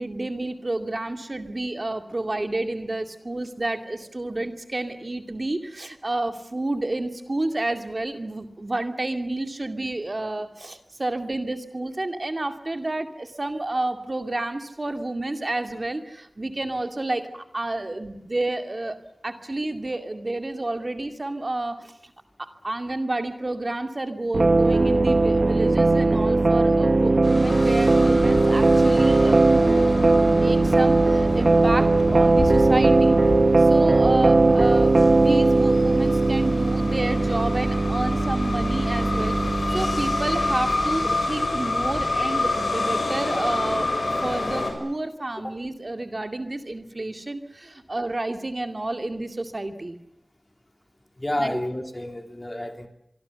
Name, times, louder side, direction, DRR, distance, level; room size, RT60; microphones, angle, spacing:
voice 1, 0.0-19.0 19.2-22.1 22.4-29.4 30.3-33.2 33.6-39.4 39.7-50.0 51.4-51.6, right 2 dB, 40° right, 7 dB, 2.2 m, -30 dB
sound 1, 24.3-41.1, right 3 dB, 60° right, 1.3 m, -19 dB
sound 2, 27.2-44.7, left 2 dB, 65° left, 6.7 m, -29 dB
voice 2, 39.7-40.0 45.4-45.5 51.2-52.9, left 1 dB, 25° left, 6 dB, 3.4 m, -30 dB
25.5 x 24.0 x 7.0 m, 0.80 s
wide cardioid pair, 65°, 0 cm